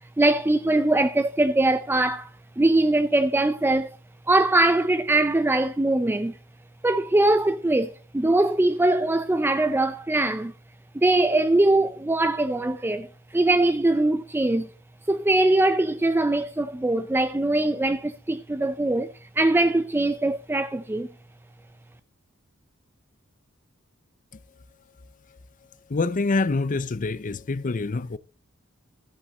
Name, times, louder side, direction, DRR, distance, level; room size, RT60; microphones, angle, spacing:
voice 1, 0.2-3.9 4.3-6.4 6.8-10.5 10.9-14.7 15.1-21.1, right 2 dB, 10° right, 0.4 m, -22 dB
voice 2, 25.9-28.2, left 3 dB, 40° left, 0.6 m, -26 dB
13.5 x 8.2 x 3.9 m
head